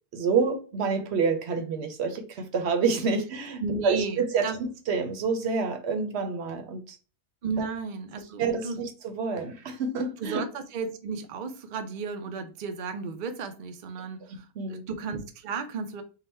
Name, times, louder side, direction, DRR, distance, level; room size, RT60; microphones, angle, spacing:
voice 1, 0.1-7.0 7.6-7.7 8.4-10.4 14.6-14.9, right 5 dB, 55° right, 0.8 m, -28 dB
voice 2, 3.6-4.6 7.4-8.8 10.2-16.0, right 4 dB, 90° right, 0.4 m, -34 dB
3.8 x 2.2 x 4.2 m
omnidirectional pair, 1.5 m